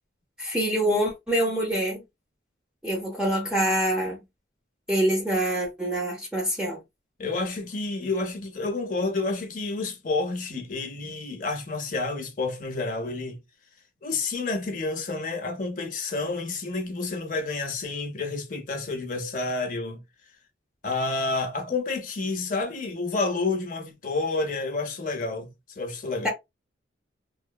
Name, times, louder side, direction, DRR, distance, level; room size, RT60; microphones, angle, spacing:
voice 1, 0.4-2.0 2.8-4.2 4.9-6.8 26.2-26.3, right 1 dB, 5° right, 0.5 m, -25 dB
voice 2, 7.2-13.4 14.0-20.0 20.8-25.5 25.8-26.3, left 3 dB, 45° left, 0.6 m, -29 dB
2.9 x 2.0 x 2.2 m
head